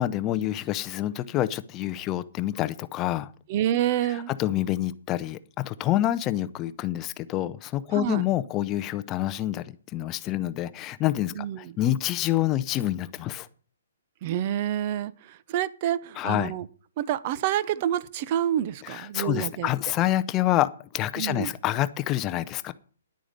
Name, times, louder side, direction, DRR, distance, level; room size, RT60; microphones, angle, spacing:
voice 1, 0.0-3.3 4.1-9.7 9.9-13.5 16.2-16.5 18.8-22.7, left 14 dB, 15° left, 0.6 m, -27 dB
voice 2, 3.5-4.3 7.9-8.2 11.4-11.7 14.2-16.7 17.0-19.7 21.2-21.5, right 11 dB, 30° right, 0.6 m, -28 dB
10.5 x 9.2 x 6.5 m
hypercardioid pair, 170°, 0 cm